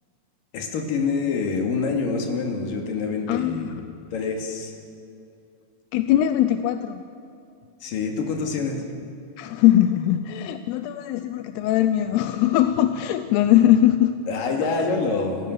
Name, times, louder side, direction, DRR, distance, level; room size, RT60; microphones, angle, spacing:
voice 1, 0.5-3.8 4.1-4.7 7.8-8.8 14.3-15.5, left 4 dB, 60° left, 2 dB, 3.8 m, -26 dB
voice 2, 3.3-4.0 5.9-7.0 9.4-14.2, left 12 dB, 85° left, 10 dB, 2.7 m, -21 dB
30.0 x 15.0 x 6.7 m, 2.6 s
omnidirectional pair, 4.7 m